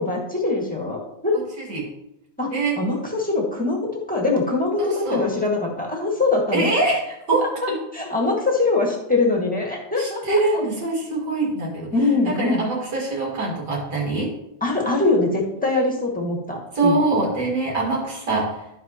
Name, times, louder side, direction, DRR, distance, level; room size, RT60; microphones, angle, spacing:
voice 1, 0.0-1.4 2.4-6.7 7.6-10.6 11.9-12.6 14.6-17.0, left 3 dB, 5° left, -1 dB, 1.7 m, -23 dB
voice 2, 1.6-1.9 2.5-2.8 4.8-5.2 6.5-7.8 10.0-11.9 12.2-14.3 16.7-18.5, right 2 dB, 80° right, -3 dB, 2.7 m, -23 dB
14.0 x 4.6 x 2.9 m, 0.83 s
omnidirectional pair, 1.9 m